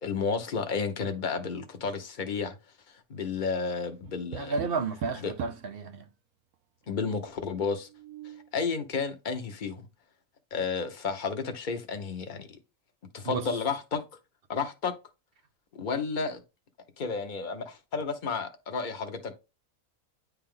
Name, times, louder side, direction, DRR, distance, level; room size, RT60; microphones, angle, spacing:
voice 1, 0.0-2.6 3.1-4.6 5.2-5.3 6.9-7.9 8.5-9.8 10.5-12.5 13.1-14.0 14.5-14.9 15.7-16.4 17.0-19.3, left 5 dB, 35° left, 1.0 m, -31 dB
Tap, 4.0-5.7 7.7-8.5, right 11 dB, 80° right, 1.1 m, -41 dB
voice 2, 4.3-6.1 13.2-13.5, right 4 dB, 50° right, 0.8 m, -32 dB
9.8 x 3.5 x 3.8 m
omnidirectional pair, 1.5 m